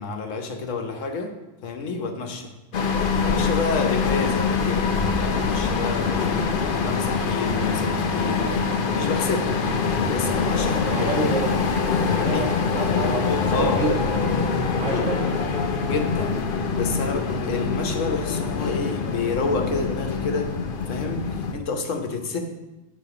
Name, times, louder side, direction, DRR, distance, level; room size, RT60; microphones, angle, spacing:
voice 1, 0.0-1.3 1.6-2.5 3.2-9.6 10.1-11.1 12.1-12.5 12.9-13.8 15.8-16.4 16.7-20.5 20.9-22.4, left 4 dB, 75° left, 4 dB, 1.3 m, -29 dB
sound 1, 2.7-21.5, left 5 dB, 55° left, 0.7 m, -24 dB
voice 2, 10.9-11.6 12.2-14.2 14.8-15.3, right 2 dB, 70° right, 0 dB, 1.7 m, -28 dB
8.2 x 4.0 x 5.8 m, 1.0 s
omnidirectional pair, 1.3 m